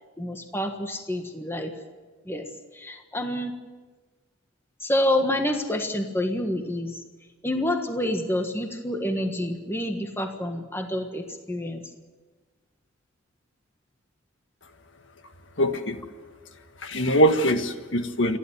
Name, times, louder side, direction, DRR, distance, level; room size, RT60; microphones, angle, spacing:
voice 1, 0.2-1.7 2.2-3.5 4.8-7.0 7.4-11.8, left 1 dB, 10° left, 5 dB, 1.5 m, -28 dB
voice 2, 15.6-16.0 16.8-18.4, equal, 70° left, 7 dB, 1.7 m, -22 dB
28.5 x 11.5 x 9.6 m, 1.3 s
head